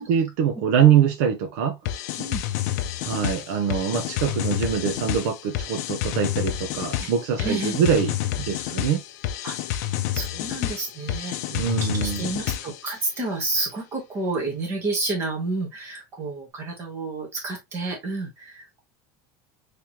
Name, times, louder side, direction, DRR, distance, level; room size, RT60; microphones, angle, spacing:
voice 1, 0.0-1.8 3.0-9.0 11.5-12.3, right 8 dB, 70° right, 0.7 m, -23 dB
sound 1, 1.9-12.9, left 12 dB, 65° left, 0.5 m, -29 dB
voice 2, 7.4-7.8 9.4-9.5 10.1-11.4 11.8-18.8, right 2 dB, 25° right, 1.6 m, -30 dB
3.6 x 3.3 x 2.9 m
cardioid pair, 175°, 10 cm